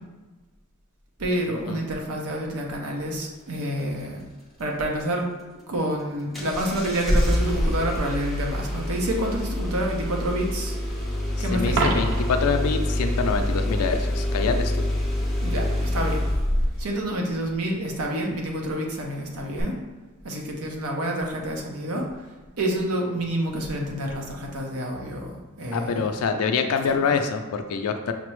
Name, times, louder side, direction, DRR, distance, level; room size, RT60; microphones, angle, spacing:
voice 1, 1.2-4.2 4.6-5.3 5.7-10.8 11.4-11.9 15.4-16.2 16.8-19.8 20.2-22.2 22.6-26.1, right 1 dB, 90° right, 0 dB, 0.7 m, -28 dB
Engine starting, 6.3-16.9 19.6-19.7, left 1 dB, ahead, 0.6 m, -26 dB
voice 2, 11.4-14.9 25.7-28.1, left 5 dB, 85° left, 7 dB, 0.4 m, -25 dB
Coin (dropping), 11.7-12.5 18.6-18.8, right 3 dB, 60° right, 0.4 m, -27 dB
5.7 x 2.0 x 3.1 m, 1.2 s
head